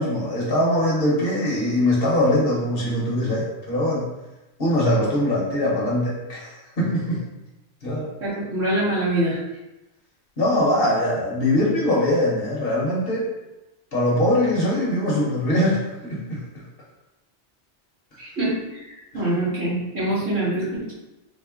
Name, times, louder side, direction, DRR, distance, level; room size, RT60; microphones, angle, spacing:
voice 1, 0.0-4.1 4.6-7.2 7.8-8.1 10.4-13.3 13.9-16.4 19.3-19.4, left 1 dB, 60° left, -4 dB, 1.1 m, -22 dB
voice 2, 8.2-9.4 18.2-20.9, right 1 dB, 60° right, -9 dB, 1.9 m, -25 dB
4.2 x 2.1 x 3.5 m, 1.0 s
omnidirectional pair, 1.2 m